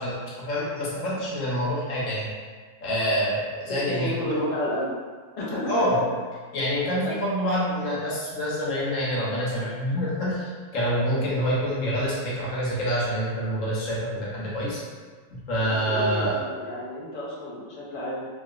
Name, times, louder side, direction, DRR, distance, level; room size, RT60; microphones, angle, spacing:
voice 1, 0.0-2.3 2.8-4.3 5.7-6.0 6.5-14.8 15.3-16.4, equal, 70° left, -7 dB, 1.2 m, -26 dB
voice 2, 3.9-4.9 5.4-5.9 6.9-7.2 15.6-18.3, left 1 dB, 40° left, -7 dB, 0.5 m, -31 dB
3.0 x 2.8 x 2.4 m, 1.5 s
omnidirectional pair, 1.4 m